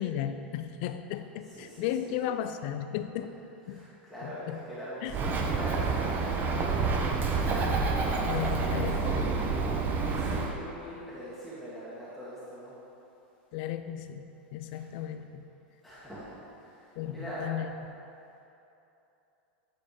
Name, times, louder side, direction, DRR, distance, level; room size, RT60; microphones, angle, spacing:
voice 1, 0.0-3.4 3.7-3.9 4.2-4.6 5.0-5.1 8.3-9.2 13.5-15.5 17.0-17.7, left 10 dB, 60° left, 9 dB, 0.4 m, -35 dB
voice 2, 1.4-2.2 3.7-7.7 8.0-12.7 14.7-15.0 15.8-17.5, equal, ahead, -11 dB, 1.9 m, -44 dB
Bird, 5.1-10.5, right 4 dB, 30° right, 0.8 m, -28 dB
9.4 x 4.2 x 5.0 m, 2.9 s
hypercardioid pair, 110°, 6 cm